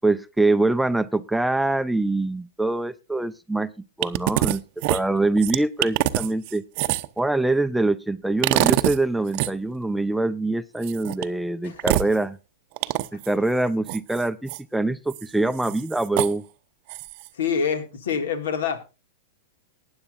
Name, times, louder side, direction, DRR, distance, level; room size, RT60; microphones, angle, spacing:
voice 1, 0.0-3.7 4.0-4.6 4.9-6.6 7.2-12.4 13.1-16.4, right 2 dB, 5° right, 12 dB, 0.6 m, -24 dB
sound 1, 4.0-4.6 4.8-7.2 8.4-9.0 9.3-9.5 10.8-11.2 11.8-12.1 12.8-13.3 13.9-14.6 15.1-15.2 15.6-16.3 16.9-17.3, right 18 dB, 50° right, 0.7 m, -24 dB
voice 2, 17.3-18.9, left 6 dB, 70° left, 8 dB, 2.2 m, -26 dB
19.5 x 9.7 x 2.6 m, 0.30 s
hypercardioid pair, 105°, 0 cm